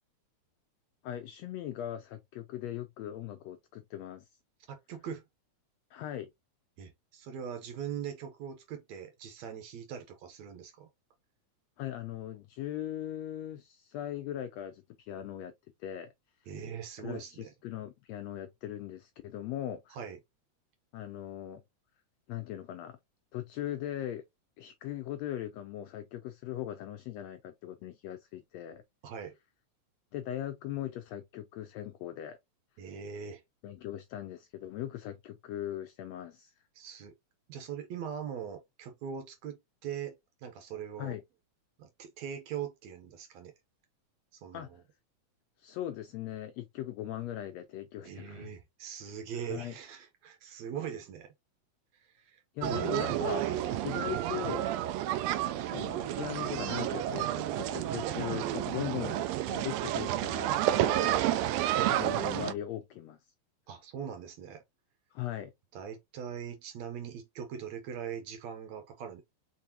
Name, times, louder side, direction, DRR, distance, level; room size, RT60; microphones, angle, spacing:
voice 1, 1.0-4.3 5.9-6.3 11.8-15.5 15.8-16.1 17.0-20.0 20.9-21.6 22.3-23.0 23.3-24.2 24.6-28.8 30.1-32.4 33.6-36.5 41.0-41.2 44.5-44.7 45.6-48.5 49.5-49.7 52.5-53.4 53.8-54.6 55.7-61.2 61.8-63.2 65.1-65.5, left 12 dB, 90° left, 1.5 m, -39 dB
voice 2, 4.7-5.2 6.8-10.9 16.5-17.5 19.9-20.2 29.0-29.4 32.8-33.4 36.8-37.1 37.5-41.2 41.8-43.5 44.3-44.8 48.0-51.3 51.9-52.4 52.8-52.9 53.4-53.6 63.7-64.6 65.7-69.2, right 8 dB, 70° right, 2.0 m, -41 dB
sound 1, 52.6-62.5, right 12 dB, 85° right, 1.5 m, -30 dB
4.6 x 4.0 x 2.8 m
omnidirectional pair, 3.5 m